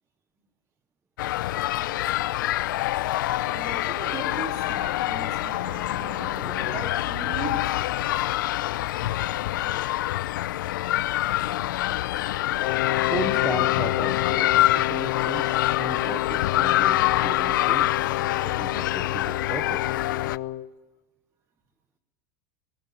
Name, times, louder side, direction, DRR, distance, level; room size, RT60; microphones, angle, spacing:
sound 1, 1.2-20.4, left 15 dB, 90° left, 0.6 m, -26 dB
voice 1, 3.4-7.8 19.2-19.3, right 5 dB, 30° right, 3.0 m, -38 dB
Wind instrument woodwind instrument, 12.6-20.7, left 15 dB, 50° left, 0.8 m, -30 dB
voice 2, 13.0-19.8, right 5 dB, 10° right, 0.7 m, -36 dB
19.5 x 17.0 x 9.2 m
supercardioid pair, 170°, 10 cm